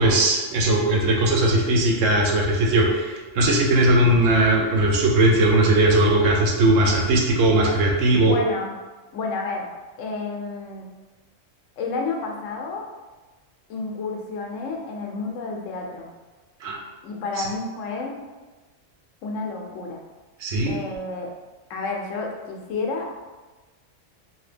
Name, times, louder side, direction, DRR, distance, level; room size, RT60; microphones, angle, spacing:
voice 1, 0.0-8.3 16.6-16.8 20.4-20.8, right 1 dB, 80° right, 0 dB, 1.0 m, -19 dB
voice 2, 8.1-8.7 9.1-9.7 10.0-10.9 11.8-12.8 13.7-16.1 17.0-18.1 19.2-20.0 20.7-21.3 21.7-23.1, left 3 dB, 85° left, 1 dB, 1.0 m, -30 dB
2.8 x 2.7 x 3.3 m, 1.3 s
omnidirectional pair, 1.3 m